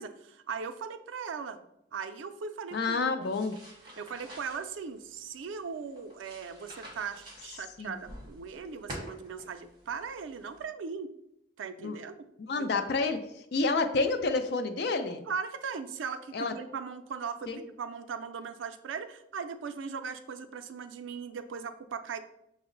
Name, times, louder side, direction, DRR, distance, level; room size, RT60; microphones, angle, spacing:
voice 1, 0.0-1.6 1.9-3.3 4.0-11.1 11.6-12.1 12.6-12.7 15.3-22.2, right 6 dB, 90° right, 9 dB, 0.4 m, -39 dB
voice 2, 2.7-3.6 7.8-7.9 11.8-12.0 12.4-15.3 16.3-16.5 17.5-17.6, left 3 dB, 55° left, 8 dB, 0.4 m, -29 dB
sound 1, 3.2-10.7, equal, 25° right, 1.0 m, -49 dB
5.9 x 2.0 x 3.7 m, 0.79 s
head